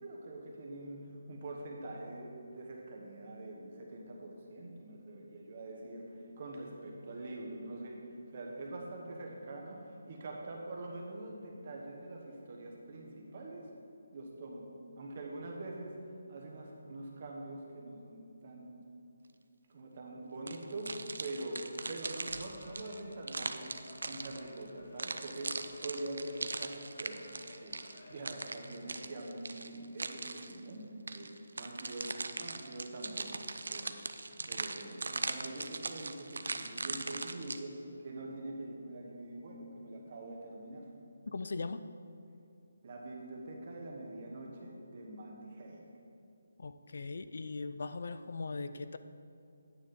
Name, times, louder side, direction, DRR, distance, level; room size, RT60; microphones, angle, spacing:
voice 1, 0.0-8.0 8.3-13.7 14.1-14.7 14.9-15.9 16.3-18.7 19.7-23.7 24.0-40.9 42.8-45.8, right 2 dB, 30° right, -1 dB, 1.2 m, -44 dB
sound 1, 20.5-24.6 25.0-30.6 31.1-37.6, right 3 dB, 80° right, 0.5 m, -40 dB
sound 2, 22.3-28.2, left 2 dB, 75° left, 1.3 m, -56 dB
voice 2, 41.3-41.8 46.6-49.0, left 3 dB, 50° left, 11 dB, 0.4 m, -39 dB
9.3 x 8.3 x 3.7 m, 2.6 s
hypercardioid pair, 175°, 0 cm